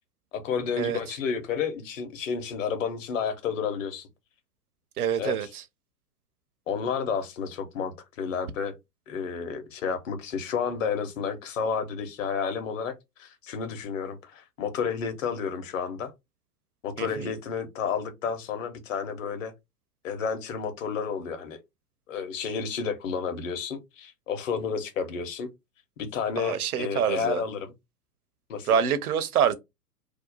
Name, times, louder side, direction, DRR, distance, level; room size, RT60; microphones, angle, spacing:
voice 1, 0.3-4.1 5.2-5.4 6.7-8.8 9.1-16.1 16.8-19.5 20.0-21.6 22.1-25.5 26.1-27.7 28.5-28.7, left 6 dB, 55° left, 0.9 m, -31 dB
voice 2, 5.0-5.6 17.0-17.4 26.4-27.4 28.6-29.5, right 8 dB, 65° right, 0.7 m, -26 dB
2.7 x 2.2 x 3.9 m
figure-of-eight pair, 100°, 48 cm